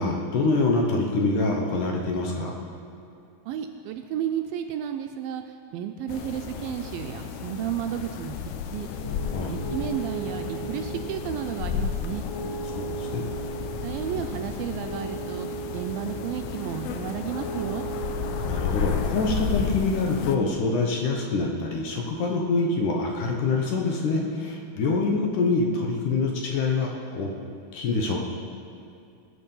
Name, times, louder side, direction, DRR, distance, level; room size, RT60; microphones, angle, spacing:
voice 1, 0.0-2.5 9.3-9.6 12.7-13.2 18.5-27.3 27.7-28.2, left 3 dB, 70° left, 1 dB, 2.2 m, -25 dB
voice 2, 3.5-5.4 5.7-8.4 8.7-8.9 9.5-12.3 13.8-15.5 15.7-17.8, right 9 dB, 80° right, 6 dB, 2.2 m, -32 dB
sound 1, 6.1-20.4, left 7 dB, 90° left, 2.6 m, -33 dB
Piano, 8.9-19.3, right 3 dB, 50° left, 4.1 m, -37 dB
20.5 x 7.3 x 5.4 m, 2.5 s
omnidirectional pair, 4.5 m